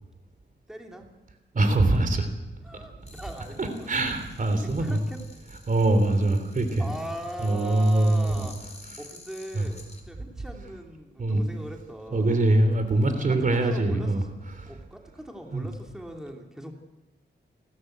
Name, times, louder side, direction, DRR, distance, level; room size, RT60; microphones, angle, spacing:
voice 1, 0.7-1.1 2.6-3.7 4.8-5.2 6.8-12.4 13.5-14.3 14.7-16.7, equal, 5° right, 2 dB, 3.0 m, -40 dB
voice 2, 1.5-2.3 3.6-5.0 5.7-6.9 7.4-8.5 9.5-9.7 11.2-11.5 12.1-14.2 14.6-14.7 15.5-15.7, right 2 dB, 45° right, 7 dB, 3.3 m, -23 dB
sound 1, 3.0-10.0, left 3 dB, 35° left, 3.9 m, -51 dB
29.0 x 13.0 x 8.0 m, 1.1 s
wide cardioid pair, 100°, 18 cm